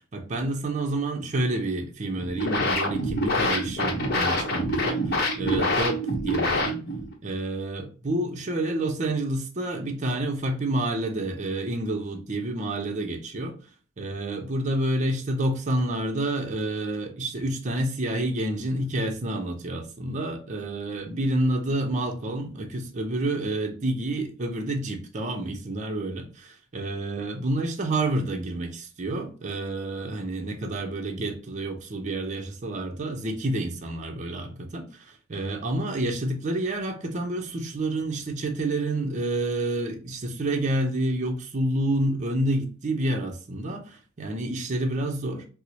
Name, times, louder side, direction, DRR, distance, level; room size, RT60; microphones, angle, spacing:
voice 1, 0.0-6.8 7.2-13.5 14.0-45.5, right 1 dB, 35° right, 0.5 m, -29 dB
sound 1, 2.1-7.1, left 1 dB, 50° left, 0.8 m, -26 dB
4.4 x 2.0 x 2.7 m
head